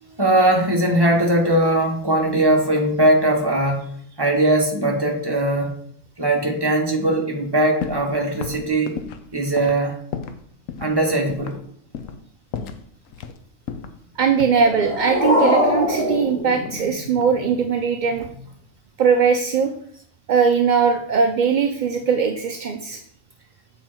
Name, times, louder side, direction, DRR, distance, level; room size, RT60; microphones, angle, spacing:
voice 1, 0.0-3.8 4.2-5.7 6.2-8.9 9.3-10.0 10.8-11.6 18.1-18.3, right 1 dB, 20° right, 0 dB, 1.4 m, -20 dB
sound 1, 7.8-8.1 8.4-10.4 10.7-10.9 11.3-11.6 11.9-12.2 12.5-13.4 13.7-15.0 16.0-16.9 17.2-17.6, left 7 dB, 85° left, 1.0 m, -34 dB
voice 2, 14.2-18.3 19.0-19.7 20.3-23.0, right 6 dB, 55° right, 5 dB, 0.5 m, -20 dB
sound 2, 14.4-17.4, left 1 dB, 10° left, 2.2 m, -22 dB
7.2 x 4.5 x 4.4 m, 0.64 s
omnidirectional pair, 1.3 m